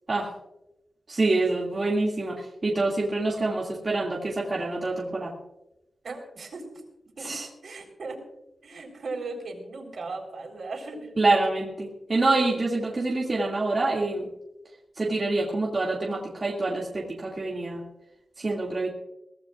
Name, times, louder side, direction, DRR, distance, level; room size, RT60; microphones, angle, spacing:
voice 1, 1.1-5.3 7.2-7.5 11.2-14.3 15.0-17.8 18.4-18.9, right 2 dB, 30° right, -4 dB, 2.2 m, -26 dB
voice 2, 6.0-6.8 7.2-8.2 8.6-11.1, right 3 dB, 60° right, 2 dB, 3.9 m, -37 dB
22.5 x 16.0 x 2.4 m, 0.92 s
wide cardioid pair, 140°, 0 cm